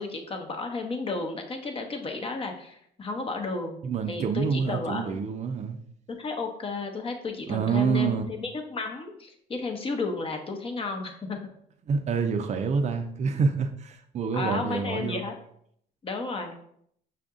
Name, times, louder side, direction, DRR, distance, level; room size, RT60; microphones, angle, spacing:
voice 1, 0.0-3.8 4.1-5.2 6.1-11.4 14.3-15.4 16.0-16.5, left 3 dB, 35° left, 4 dB, 0.8 m, -33 dB
voice 2, 3.8-5.8 7.5-8.2 11.9-15.2, right 5 dB, 45° right, 6 dB, 0.5 m, -27 dB
5.7 x 2.5 x 3.6 m, 0.68 s
cardioid pair, 110°, 17 cm